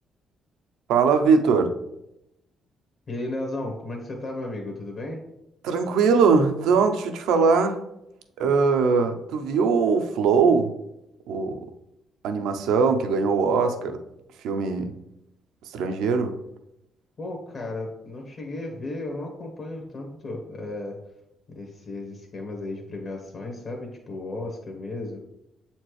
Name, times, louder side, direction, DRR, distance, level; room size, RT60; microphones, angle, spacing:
voice 1, 0.9-1.7 5.6-7.8 8.4-10.7 11.3-11.6 12.2-14.0 14.4-14.9 15.7-16.4, right 5 dB, 85° right, 7 dB, 0.6 m, -21 dB
voice 2, 3.1-5.2 17.2-20.9 21.5-25.2, left 2 dB, 50° left, 0 dB, 1.2 m, -34 dB
7.3 x 4.3 x 3.2 m, 0.86 s
cardioid pair, 90°, 0 cm